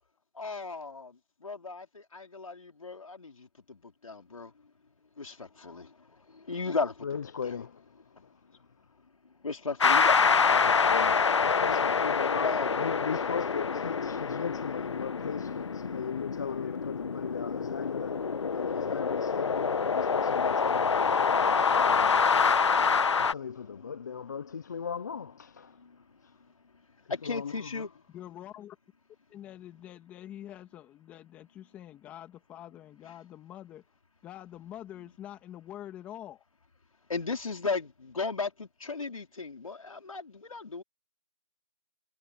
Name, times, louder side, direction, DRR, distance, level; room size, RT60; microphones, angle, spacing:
voice 1, 0.3-4.5 5.2-7.5 9.2-11.1 12.4-12.9 21.4-23.9 25.7-26.0 27.1-27.9 37.1-40.8, left 4 dB, 80° left, 4.6 m, -37 dB
voice 2, 7.0-7.8 10.5-22.6 23.1-25.8 27.2-27.9, left 6 dB, 35° left, 0.7 m, -38 dB
sound 1, 9.8-23.3, left 5 dB, 55° left, 1.1 m, -26 dB
voice 3, 28.1-28.8 29.3-33.8 34.2-36.4, left 12 dB, 10° left, 2.3 m, -45 dB
hypercardioid pair, 170°, 17 cm